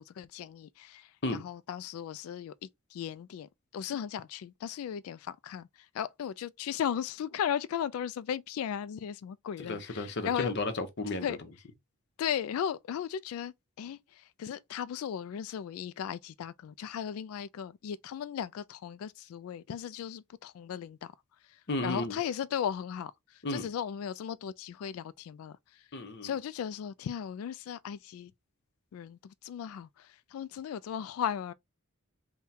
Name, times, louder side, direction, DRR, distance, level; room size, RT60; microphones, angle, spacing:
voice 1, 0.0-2.5 2.9-5.7 5.9-10.5 11.2-11.4 12.2-14.0 14.4-21.1 21.8-23.1 23.5-25.6 26.2-28.3 28.9-31.5, left 9 dB, 75° left, 0.3 m, -36 dB
voice 2, 9.6-11.3 21.7-22.2 23.4-23.7 25.9-26.3, left 2 dB, 55° left, 0.8 m, -33 dB
3.6 x 2.2 x 4.2 m
head